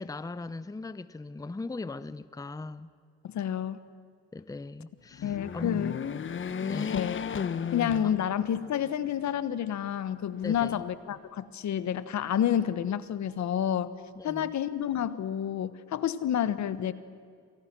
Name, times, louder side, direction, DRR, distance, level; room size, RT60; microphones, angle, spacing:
voice 1, 0.0-2.9 4.3-6.0 6.6-7.2 7.6-7.7 8.0-8.1 10.4-10.8 14.2-14.5, left 3 dB, 10° left, 0.7 m, -39 dB
voice 2, 3.3-3.8 5.2-6.0 6.9-7.2 7.7-13.9 14.2-16.9, left 9 dB, 65° left, 1.3 m, -29 dB
sound 1, 5.1-8.7 9.2-9.3 10.4-11.2, left 7 dB, 40° left, 1.0 m, -34 dB
29.0 x 26.5 x 6.2 m
cardioid pair, 90°, 30 cm